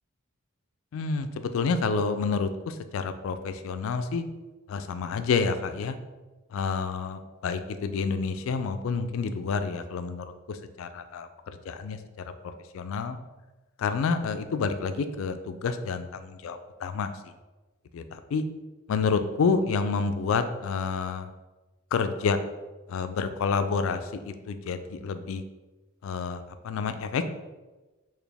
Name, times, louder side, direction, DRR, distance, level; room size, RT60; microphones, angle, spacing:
voice 1, 0.9-4.2 4.7-6.0 6.5-12.0 12.7-13.2 13.8-17.1 17.9-18.4 18.9-21.3 21.9-22.4 22.9-25.4 26.0-27.3, left 5 dB, 65° left, 10 dB, 0.3 m, -29 dB
4.1 x 2.5 x 3.4 m, 1.1 s
head